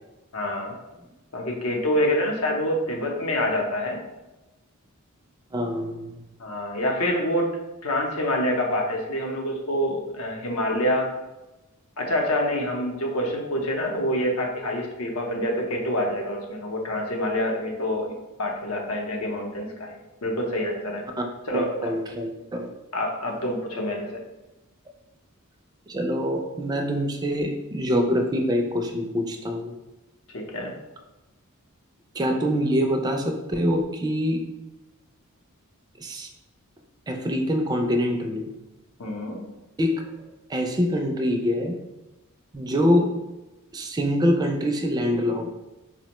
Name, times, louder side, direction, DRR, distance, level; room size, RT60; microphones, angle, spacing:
voice 1, 0.3-0.7 1.3-4.0 6.4-7.5 7.8-11.1 12.0-20.0 20.2-21.0 21.5-21.9 22.9-24.2 30.3-30.8 39.0-39.4, left 1 dB, 75° left, 1 dB, 0.7 m, -26 dB
voice 2, 5.5-6.2 21.6-22.7 25.9-29.7 32.2-34.5 36.0-36.3 37.1-38.5 39.8-40.1 40.5-41.8 42.5-43.2 43.7-45.5, equal, 20° right, 3 dB, 0.3 m, -25 dB
4.2 x 2.1 x 2.9 m, 1.0 s
head